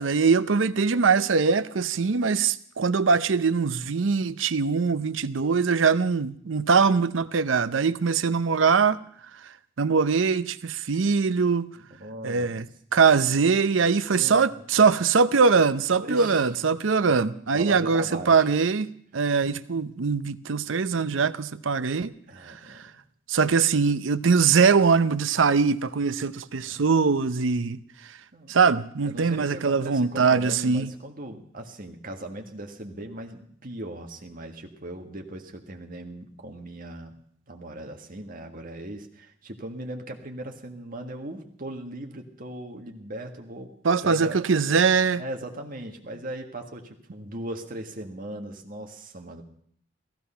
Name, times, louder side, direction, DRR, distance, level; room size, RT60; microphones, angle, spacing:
voice 1, 0.0-9.0 9.8-11.7 12.2-12.7 12.9-22.1 22.5-22.8 23.3-27.8 28.5-30.9 43.8-45.2, right 5 dB, 85° right, 0.7 m, -22 dB
voice 2, 11.8-12.7 14.1-14.6 16.0-16.5 17.5-18.5 22.3-23.0 26.6-26.8 28.3-28.6 29.0-37.2 37.5-43.7 44.0-44.5 45.2-49.4, right 1 dB, 45° right, 1.8 m, -38 dB
16.0 x 15.0 x 5.7 m
head